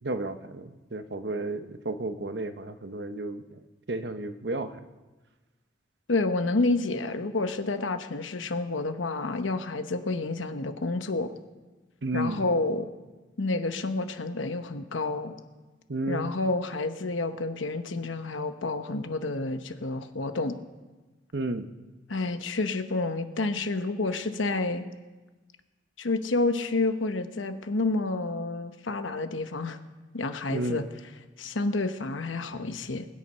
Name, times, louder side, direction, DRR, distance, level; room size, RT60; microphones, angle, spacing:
voice 1, 0.0-3.6 3.9-4.8 12.0-12.4 15.9-16.3 21.3-21.7 30.5-30.9, right 2 dB, 60° right, 10 dB, 0.8 m, -32 dB
voice 2, 6.1-11.3 12.1-12.9 13.4-15.4 16.1-20.5 22.1-24.8 26.0-29.8 30.1-30.8 31.4-33.1, left 3 dB, 85° left, 9 dB, 1.0 m, -29 dB
20.5 x 8.6 x 5.6 m, 1.2 s
head